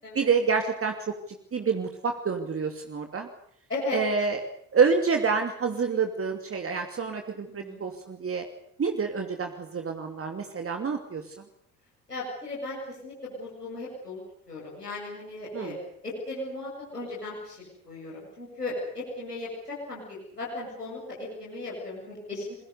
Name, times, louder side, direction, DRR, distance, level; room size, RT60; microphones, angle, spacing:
voice 1, 0.1-1.1 1.5-3.3 3.9-4.4 4.7-8.4 8.8-11.3 15.5-15.8, right 5 dB, 30° right, 5 dB, 2.7 m, -27 dB
voice 2, 3.7-4.3 7.6-7.8 12.1-14.2 14.5-15.8 16.0-22.6, left 2 dB, 90° left, -5 dB, 7.7 m, -36 dB
27.0 x 22.5 x 6.8 m, 0.69 s
figure-of-eight pair, 55°, 45 cm